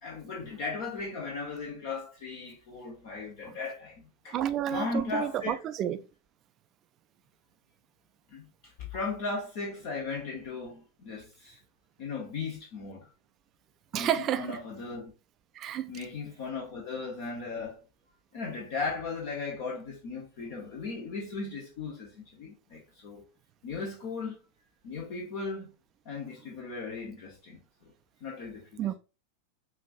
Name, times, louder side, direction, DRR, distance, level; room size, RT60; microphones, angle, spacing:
voice 1, 0.0-4.3 4.7-5.6 8.3-11.6 12.0-13.1 13.9-15.1 15.9-17.8 18.3-23.2 23.6-24.4 24.8-25.7 26.0-27.9 28.2-28.9, left 4 dB, 50° left, 0.9 m, -37 dB
voice 2, 4.3-6.0 13.9-14.5 15.5-15.9 28.8-28.9, right 10 dB, 30° right, 0.4 m, -30 dB
5.4 x 2.6 x 2.5 m
figure-of-eight pair, 90°, 0 cm